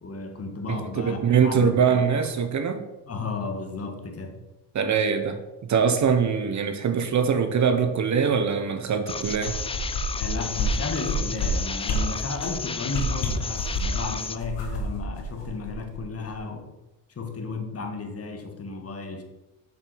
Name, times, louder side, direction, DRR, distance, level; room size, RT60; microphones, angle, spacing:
voice 1, 0.0-2.3 3.1-4.4 10.2-16.7 17.1-19.2, left 3 dB, 35° left, 4 dB, 1.6 m, -33 dB
voice 2, 0.7-2.8 4.7-9.6, right 6 dB, 45° right, 8 dB, 1.0 m, -23 dB
sound 1, 9.1-14.4, left 5 dB, 15° left, 0.4 m, -33 dB
sound 2, 9.2-10.3 10.6-10.7 11.0-11.5 11.8-12.0 12.4-12.6 12.9-14.0 14.4-16.0 16.3-16.4, left 4 dB, 85° left, 2.1 m, -29 dB
7.1 x 5.4 x 6.3 m, 0.99 s
cardioid pair, 110°, 41 cm